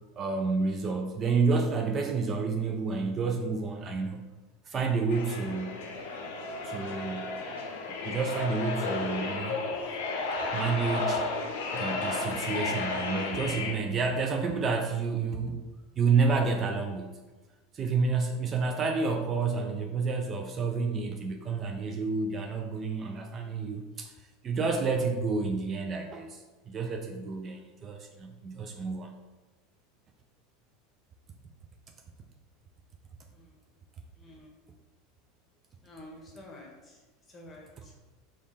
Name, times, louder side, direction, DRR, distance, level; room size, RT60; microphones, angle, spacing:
voice 1, 0.2-4.2 4.7-5.8 6.6-7.3 8.0-9.6 10.5-11.2 11.7-15.6 16.0-17.2 17.7-24.1 24.4-29.1 37.8-37.9, right 4 dB, 35° right, 3 dB, 0.4 m, -29 dB
sound 1, 5.1-13.7, left 3 dB, 70° left, 0.6 m, -33 dB
voice 2, 34.2-34.5 35.8-37.0 37.3-37.9, left 1 dB, 25° left, -1 dB, 1.2 m, -49 dB
3.5 x 2.4 x 4.0 m, 1.2 s
hypercardioid pair, 85°, 0 cm